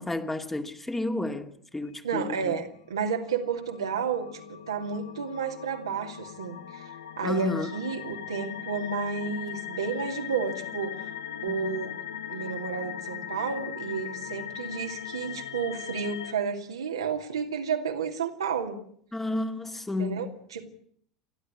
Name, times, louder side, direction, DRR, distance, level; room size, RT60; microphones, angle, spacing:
voice 1, 0.0-2.6 7.2-7.7 11.5-11.9 19.1-20.3, left 2 dB, 10° left, 2.2 m, -32 dB
voice 2, 2.0-6.8 7.2-11.1 11.4-11.9 12.3-18.8 20.0-20.7, right 6 dB, 75° right, 2.6 m, -31 dB
sound 1, 3.1-16.3, left 9 dB, 75° left, 1.5 m, -39 dB
29.0 x 12.0 x 9.9 m
figure-of-eight pair, 75°, 3 cm